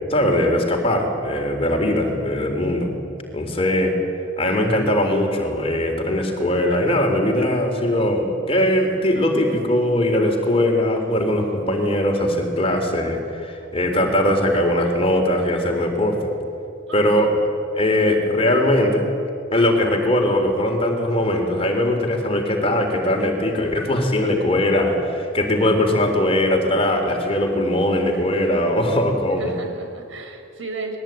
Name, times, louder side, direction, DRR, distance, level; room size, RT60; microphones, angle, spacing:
voice 1, 0.1-2.9 3.3-4.0 4.4-16.2 16.9-17.3 17.8-19.1 19.5-29.5, left 1 dB, 30° left, 3 dB, 3.8 m, -20 dB
voice 2, 16.9-17.4 29.4-31.0, right 3 dB, 65° right, 5 dB, 5.1 m, -35 dB
30.0 x 21.5 x 9.2 m, 2.6 s
head